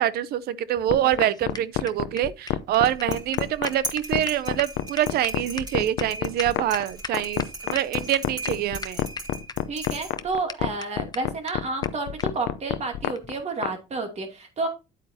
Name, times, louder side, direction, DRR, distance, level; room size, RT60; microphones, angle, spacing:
voice 1, 0.0-9.1, right 12 dB, 70° right, 0.5 m, -25 dB
sound 1, 0.8-7.5 7.7-7.8 8.1-8.5 8.8-9.5 9.8-9.9 10.2-10.3 10.5-10.6 10.8-10.9 11.1-11.2 11.5-11.6 11.8-11.9 12.2-12.3 13.1-13.3, left 5 dB, 25° left, 0.6 m, -36 dB
sound 2, 0.9-13.7, left 15 dB, 90° left, 0.6 m, -27 dB
sound 3, 2.7-10.4, right 2 dB, 25° right, 3.5 m, -39 dB
voice 2, 9.7-14.7, right 3 dB, 40° right, 2.6 m, -30 dB
9.1 x 8.3 x 2.7 m
cardioid pair, 110°, 17 cm